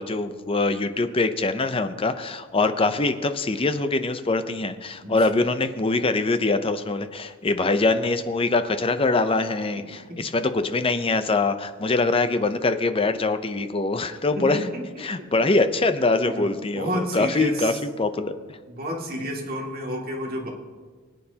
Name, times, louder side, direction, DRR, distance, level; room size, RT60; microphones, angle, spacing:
voice 1, 0.0-14.6 15.0-18.6, left 3 dB, 30° left, 9 dB, 0.6 m, -23 dB
voice 2, 14.3-14.8 15.2-15.3 16.2-17.8 18.7-20.5, equal, 50° right, -2 dB, 2.3 m, -30 dB
21.0 x 9.0 x 2.9 m, 1.5 s
head